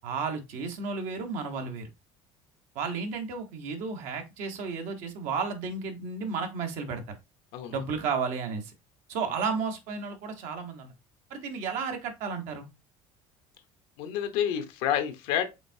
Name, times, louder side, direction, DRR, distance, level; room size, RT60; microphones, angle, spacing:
voice 1, 0.0-1.9 2.7-7.1 7.7-8.7 9.1-10.9 11.3-12.7, right 5 dB, 75° right, 1.1 m, -33 dB
voice 2, 14.0-15.4, left 10 dB, 85° left, 0.9 m, -28 dB
5.1 x 3.6 x 2.7 m
supercardioid pair, 105°, 13 cm